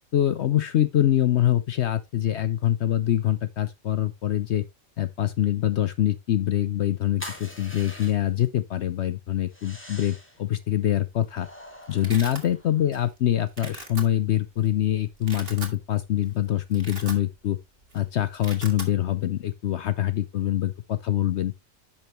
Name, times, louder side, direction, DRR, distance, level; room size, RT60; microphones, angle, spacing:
voice 1, 0.1-4.6 5.0-11.5 11.9-17.6 17.9-21.5, left 12 dB, 65° left, 0.8 m, -24 dB
sound 1, 7.2-8.5 9.5-10.4 11.3-13.0, left 1 dB, 10° left, 2.1 m, -43 dB
Domestic sounds home sounds, 11.2-11.3 11.6-12.4 12.9-13.2 13.5-14.0 14.6-14.7 15.1-15.8 16.2-16.3 16.6-17.6 17.8-18.0 18.2-18.9, right 3 dB, 45° right, 2.1 m, -39 dB
10.5 x 5.9 x 3.1 m
omnidirectional pair, 1.4 m